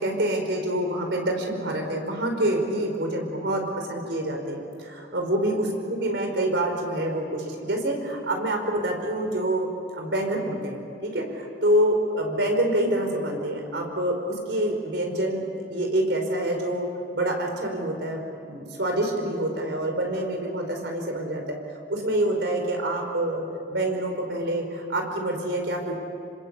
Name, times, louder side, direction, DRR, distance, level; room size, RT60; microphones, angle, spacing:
voice 1, 0.0-9.7 10.0-15.4 15.7-16.9 17.1-21.6 21.9-23.4 23.7-26.0, right 1 dB, 70° right, 3 dB, 5.1 m, -26 dB
27.0 x 26.0 x 8.5 m, 2.6 s
head